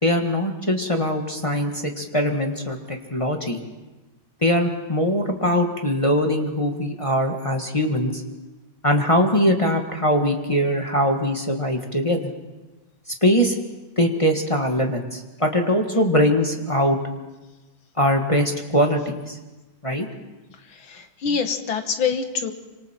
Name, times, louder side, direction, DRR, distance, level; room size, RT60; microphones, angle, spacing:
voice 1, 0.0-3.6 4.4-8.2 8.8-12.2 13.2-13.6 14.0-17.0 18.0-19.4 19.8-20.1, equal, 15° left, 2 dB, 1.5 m, -21 dB
voice 2, 20.7-22.5, left 6 dB, 70° left, 7 dB, 2.3 m, -25 dB
27.0 x 26.0 x 4.5 m, 1.1 s
omnidirectional pair, 2.3 m